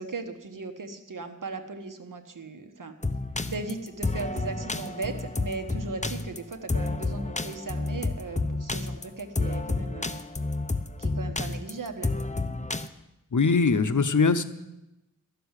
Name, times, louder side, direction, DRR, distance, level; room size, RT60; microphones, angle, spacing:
voice 1, 0.0-2.9 3.5-10.2 11.0-12.1, right 3 dB, 80° right, 7 dB, 1.3 m, -37 dB
sound 1, 3.0-12.9, left 3 dB, 20° left, 0.7 m, -30 dB
voice 2, 13.3-14.4, left 4 dB, 70° left, 10 dB, 0.9 m, -21 dB
13.0 x 6.9 x 9.7 m, 0.92 s
wide cardioid pair, 60°, 31 cm